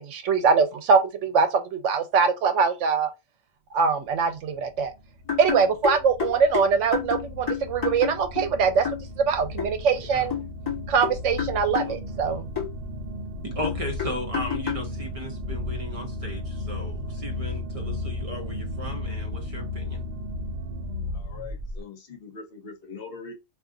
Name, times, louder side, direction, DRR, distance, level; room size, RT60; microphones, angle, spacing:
voice 1, 0.0-3.1 3.7-4.9 5.4-10.4 10.9-12.5, right 5 dB, 85° right, 1.0 m, -23 dB
sound 1, 4.3-21.8, left 2 dB, 55° right, 0.7 m, -35 dB
sound 2, 5.3-8.5 8.8-9.1 9.6-9.7 10.3-12.0 12.6-12.7 13.6-14.9, left 8 dB, 35° left, 1.3 m, -29 dB
voice 2, 13.4-20.0, equal, 30° right, 0.9 m, -36 dB
voice 3, 21.1-23.3, left 5 dB, 55° left, 0.9 m, -42 dB
2.5 x 2.4 x 3.7 m
omnidirectional pair, 1.2 m